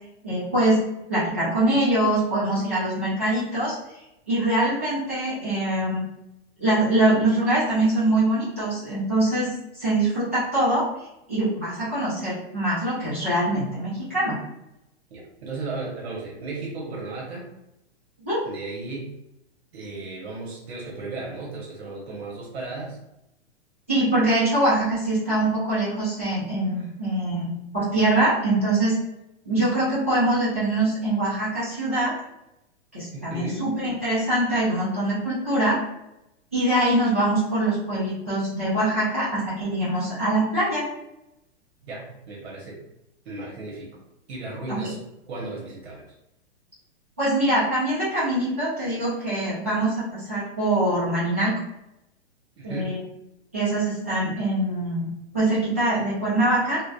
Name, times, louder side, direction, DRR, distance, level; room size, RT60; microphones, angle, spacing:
voice 1, 0.2-0.8 1.1-3.7 4.3-6.0 6.6-10.9 11.3-14.3 18.2-18.4 23.9-27.5 27.7-29.0 29.5-32.1 32.9-35.8 36.5-40.9 44.7-44.9 47.2-51.6 52.6-53.0 53.5-55.1 55.3-56.8, right 1 dB, 15° right, -13 dB, 0.3 m, -23 dB
voice 2, 15.1-17.5 18.5-19.1 19.7-23.0 26.8-26.9 33.1-33.7 41.9-42.8 43.2-44.0 44.3-45.0 45.3-46.1 52.6-52.9, right 3 dB, 65° right, -3 dB, 0.9 m, -35 dB
2.7 x 2.1 x 2.2 m, 0.87 s
hypercardioid pair, 175°, 34 cm